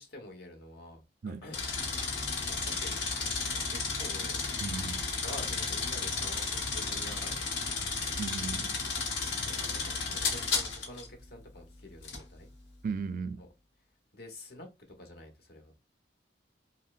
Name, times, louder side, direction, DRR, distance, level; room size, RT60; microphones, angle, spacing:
voice 1, 0.0-1.6 2.4-4.5 5.1-7.6 9.1-12.5 13.4-13.5 14.1-14.7 15.0-15.7, left 1 dB, 60° left, 1.0 m, -48 dB
sound 1, 1.5-11.1 12.0-12.2, left 4 dB, 90° left, 1.1 m, -33 dB
voice 2, 4.6-5.0 8.2-8.7 12.8-13.4, right 5 dB, 50° right, 0.3 m, -36 dB
5.4 x 2.1 x 2.4 m
head